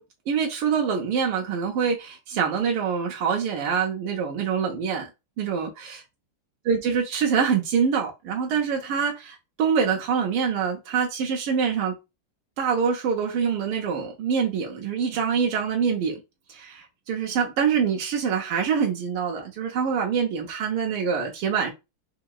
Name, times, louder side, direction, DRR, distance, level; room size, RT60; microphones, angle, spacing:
voice 1, 0.3-5.1 5.4-6.0 6.6-12.0 12.6-16.2 16.5-21.7, right 6 dB, 85° right, 1.7 m, -25 dB
4.8 x 2.8 x 2.3 m
omnidirectional pair, 2.3 m